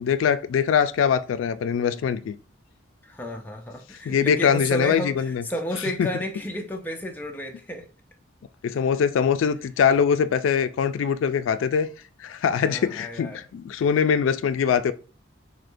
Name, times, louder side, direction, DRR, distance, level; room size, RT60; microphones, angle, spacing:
voice 1, 0.0-2.4 4.1-5.4 6.0-6.1 8.6-11.9 12.2-14.9, left 7 dB, 85° left, 0.3 m, -22 dB
voice 2, 3.0-7.9 8.7-8.8 12.6-13.4 13.7-13.8, left 1 dB, 10° left, 0.4 m, -32 dB
6.2 x 2.1 x 2.5 m
head